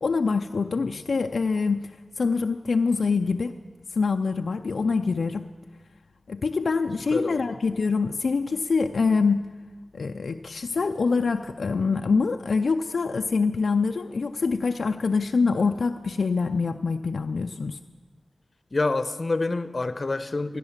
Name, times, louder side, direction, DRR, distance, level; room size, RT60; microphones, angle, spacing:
voice 1, 0.0-3.5 4.0-5.5 6.3-9.5 9.9-17.8, left 4 dB, 80° left, 6 dB, 0.4 m, -25 dB
voice 2, 7.1-7.6 18.7-20.6, left 3 dB, 50° left, 12 dB, 0.8 m, -28 dB
16.0 x 10.5 x 7.3 m, 1.5 s
cardioid pair, 50°, 0 cm